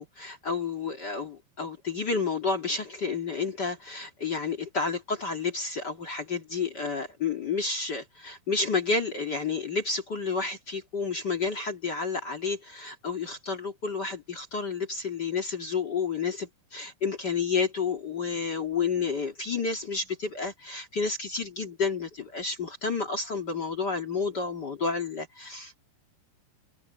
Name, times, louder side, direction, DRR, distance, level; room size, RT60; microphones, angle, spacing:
voice 1, 0.0-25.9, left 4 dB, 40° left, 1.6 m, -30 dB
omnidirectional pair, 4.8 m